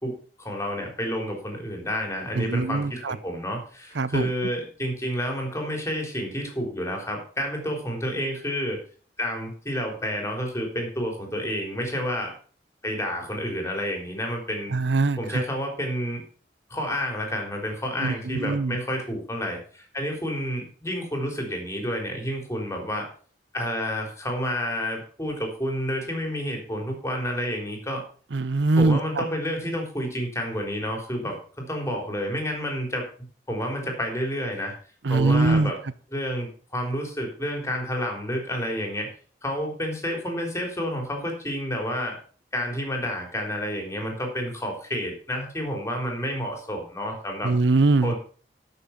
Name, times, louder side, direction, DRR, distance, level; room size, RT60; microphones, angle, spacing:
voice 1, 0.0-8.8 9.2-12.3 12.8-14.7 15.2-16.2 16.7-23.1 23.5-28.0 28.8-33.1 33.5-34.7 35.1-35.8 36.1-39.1 39.4-42.2 42.5-47.5 48.0-48.2, equal, 15° left, 2 dB, 3.7 m, -30 dB
voice 2, 2.4-3.2 4.0-4.3 14.7-15.4 18.0-18.8 28.3-29.2 35.0-35.7 47.4-48.1, right 3 dB, 85° right, 16 dB, 0.7 m, -22 dB
12.5 x 6.8 x 5.8 m, 0.42 s
head